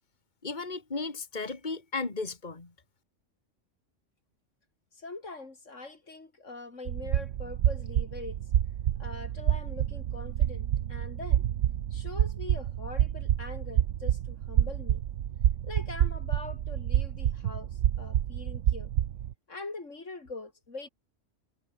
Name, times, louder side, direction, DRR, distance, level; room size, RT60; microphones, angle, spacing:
voice 1, 0.4-2.7, left 3 dB, 40° left, 2.5 m, -35 dB
voice 2, 4.9-8.4 9.0-11.5 11.9-15.0 15.6-18.9 19.5-20.9, left 3 dB, 80° left, 3.7 m, -43 dB
sound 1, 6.9-19.3, right 11 dB, 80° right, 1.1 m, -28 dB
omnidirectional pair, 1.3 m